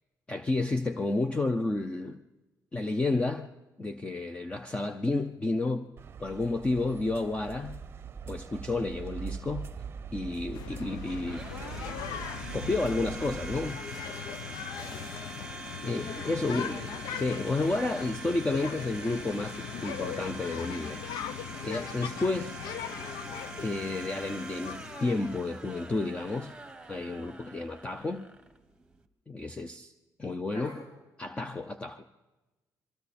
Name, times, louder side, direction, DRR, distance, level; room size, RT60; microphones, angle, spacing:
voice 1, 0.3-2.2 2.7-3.5 3.8-5.9 6.2-7.8 8.3-9.7 10.1-11.5 12.5-13.8 15.8-16.7 17.1-21.0 21.6-22.6 23.6-26.5 26.9-28.3 29.3-29.9 30.2-30.8 31.2-32.0, left 2 dB, 15° left, 8 dB, 0.7 m, -31 dB
sound 1, 6.0-13.7, right 7 dB, 35° right, 0.7 m, -42 dB
Domestic sounds home sounds, 10.2-29.1, right 3 dB, 10° right, 1.3 m, -44 dB
sound 2, 10.5-25.5, left 10 dB, 90° left, 0.7 m, -40 dB
voice 2, 14.5-15.1 16.2-16.9 30.5-30.9, left 2 dB, 50° left, -1 dB, 3.8 m, -43 dB
27.0 x 23.5 x 4.3 m, 1.1 s
cardioid pair, 125°, 6 cm